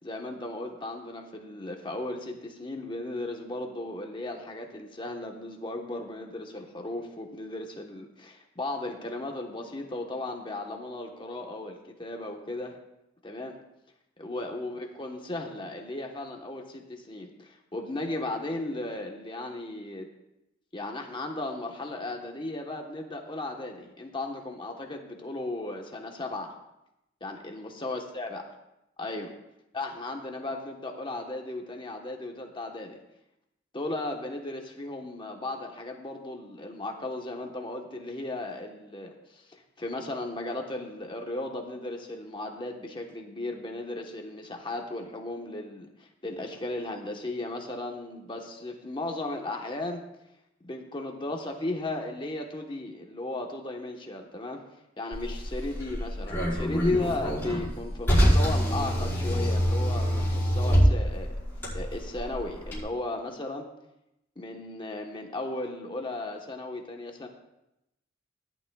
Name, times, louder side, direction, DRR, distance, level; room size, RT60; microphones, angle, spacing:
voice 1, 0.0-12.8 13.2-13.5 14.2-20.1 20.7-26.5 27.2-28.4 29.0-29.3 29.7-32.9 33.7-50.0 50.6-54.6 55.0-61.3 61.7-63.7 64.4-67.3, left 2 dB, 25° left, 2 dB, 1.2 m, -36 dB
Car, 55.1-62.8, equal, 10° left, 4.6 m, -26 dB
18.0 x 11.5 x 2.4 m, 0.88 s
head